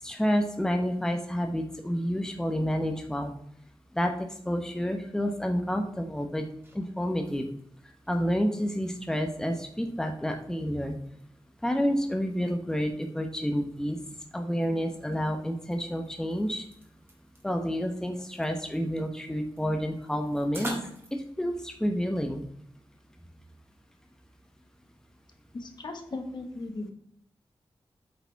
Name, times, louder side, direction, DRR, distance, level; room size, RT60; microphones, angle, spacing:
voice 1, 0.0-3.3 3.9-4.1 4.5-6.4 6.7-7.5 8.1-11.0 11.6-14.0 14.3-16.7 17.4-20.7 21.1-22.4, equal, 5° left, 4 dB, 0.8 m, -29 dB
sound 1, 6.4-21.1, right 1 dB, 25° right, 1.8 m, -48 dB
voice 2, 25.5-26.9, left 2 dB, 50° left, 5 dB, 1.2 m, -37 dB
8.2 x 4.8 x 4.5 m, 0.70 s
wide cardioid pair, 125°, 9 cm